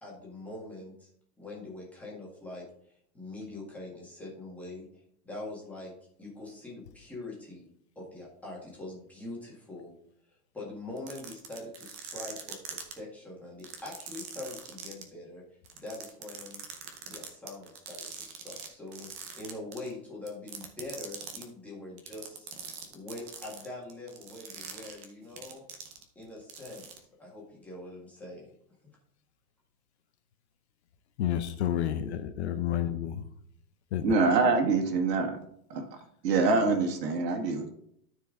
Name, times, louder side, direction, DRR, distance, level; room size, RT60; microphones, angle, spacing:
voice 1, 0.0-1.1 1.4-2.6 3.1-4.8 5.2-5.9 6.2-7.7 8.0-9.9 10.5-15.4 15.7-16.6 17.1-19.1 19.3-22.5 22.9-25.6 26.2-28.5, left 2 dB, 5° left, -5 dB, 1.8 m, -43 dB
sound 1, 11.0-12.9 13.6-15.0 15.7-18.7 18.9-19.9 20.3-21.4 22.0-26.2 26.5-27.0, right 8 dB, 20° right, 0.6 m, -42 dB
voice 2, 31.2-33.2 33.9-34.1, left 10 dB, 45° left, 10 dB, 0.7 m, -30 dB
voice 3, 34.0-35.3 35.7-35.9 36.2-37.7, right 4 dB, 85° right, 3 dB, 2.1 m, -25 dB
13.0 x 4.7 x 3.8 m, 0.70 s
supercardioid pair, 170°, 48 cm